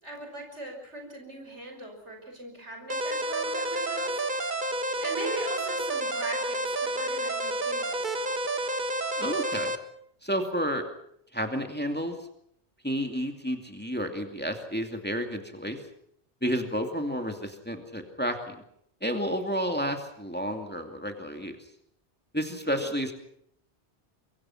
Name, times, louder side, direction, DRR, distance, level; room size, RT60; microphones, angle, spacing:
voice 1, 0.0-4.2 5.0-8.0 22.6-22.9, right 2 dB, 90° right, 2 dB, 5.8 m, -40 dB
sound 1, 2.9-9.8, right 1 dB, 45° right, 1.6 m, -30 dB
voice 2, 9.2-9.7 10.2-10.9 11.3-12.2 12.8-15.8 16.4-18.6 19.0-21.6 22.3-23.1, equal, 10° left, 4 dB, 2.5 m, -31 dB
25.0 x 23.0 x 6.0 m, 0.72 s
omnidirectional pair, 1.1 m